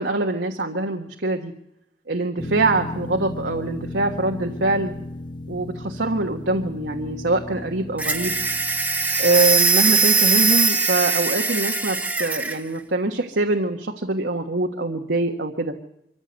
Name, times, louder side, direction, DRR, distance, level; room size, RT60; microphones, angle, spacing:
voice 1, 0.0-1.5 2.1-4.9 5.5-8.4 9.2-15.7, right 2 dB, 85° right, 3 dB, 1.5 m, -24 dB
sound 1, 2.4-9.6, left 1 dB, 25° left, 0.8 m, -35 dB
sound 2, 8.0-12.6, right 4 dB, 10° right, 1.0 m, -21 dB
24.5 x 15.0 x 8.1 m, 0.81 s
head